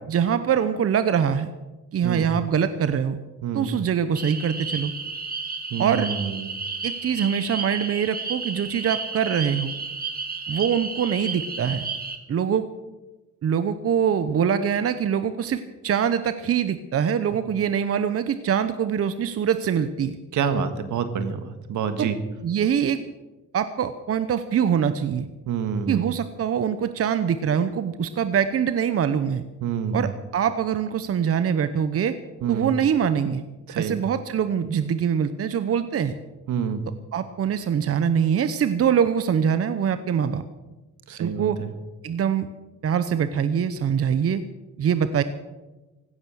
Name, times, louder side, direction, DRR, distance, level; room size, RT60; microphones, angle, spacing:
voice 1, 0.1-1.5 1.9-3.2 3.5-4.9 5.8-6.1 6.8-9.7 10.5-11.8 12.3-12.7 13.4-20.2 22.0-22.1 22.4-23.0 23.5-25.3 25.9-29.4 29.9-32.2 32.5-33.4 33.8-36.1 37.1-40.4 41.2-41.6 42.0-42.5 42.8-44.4 44.8-45.2, right 8 dB, 50° right, 11 dB, 0.9 m, -23 dB
sound 1, 4.2-12.2, right 4 dB, 30° right, 2.1 m, -32 dB
voice 2, 5.7-6.5 20.3-22.1 25.5-26.1 29.6-30.1 32.4-32.7 33.7-34.0 36.5-36.8 41.1-41.7, right 7 dB, 75° right, 9 dB, 1.7 m, -27 dB
16.5 x 12.5 x 6.5 m, 1.1 s
cardioid pair, 90°, 30 cm